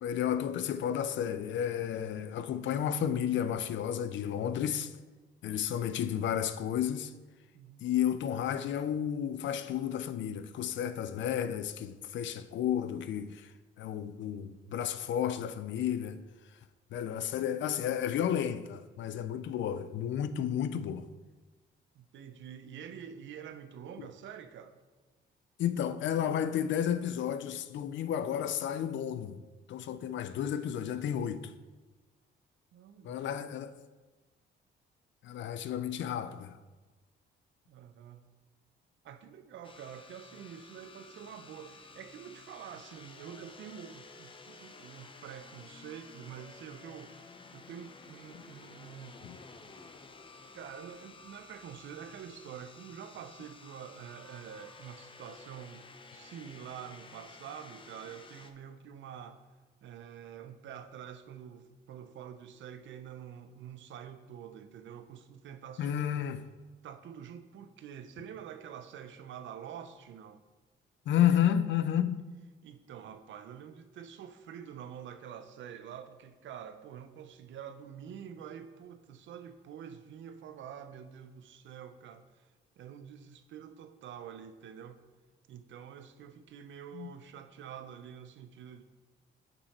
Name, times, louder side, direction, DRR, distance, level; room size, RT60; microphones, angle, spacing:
voice 1, 0.0-4.9 5.4-7.1 7.8-13.5 13.8-16.2 16.9-21.1 25.6-29.4 29.7-31.5 33.0-33.7 35.2-36.6 49.2-49.4 65.8-66.4 71.1-72.2 86.9-87.1, left 9 dB, 70° left, 0.5 m, -32 dB
voice 2, 7.5-7.9 21.9-24.8 30.0-30.2 32.7-33.5 37.7-38.2 39.0-49.2 50.5-55.8 56.1-59.4 59.8-66.3 66.8-70.4 72.6-82.5 82.8-85.0 85.5-88.8, right 8 dB, 70° right, 0.7 m, -47 dB
sound 1, 39.6-58.5, left 4 dB, 25° left, 0.6 m, -53 dB
7.0 x 5.4 x 4.3 m
cardioid pair, 90°, 20 cm